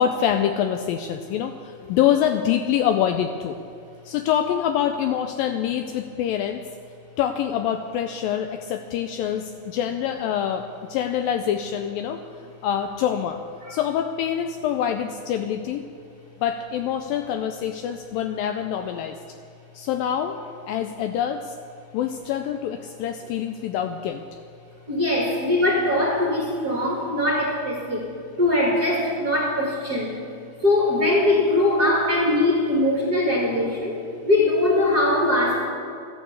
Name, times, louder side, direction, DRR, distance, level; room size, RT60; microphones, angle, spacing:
voice 1, 0.0-3.6 4.1-6.6 7.2-12.2 12.6-13.4 13.7-15.9 16.4-19.2 19.7-20.4 20.7-21.6 21.9-24.2, left 9 dB, 85° left, 7 dB, 2.1 m, -25 dB
voice 2, 24.9-28.1 28.4-30.2 30.6-35.7, left 1 dB, 35° right, -2 dB, 1.8 m, -21 dB
14.0 x 10.5 x 8.0 m, 2.5 s
omnidirectional pair, 4.6 m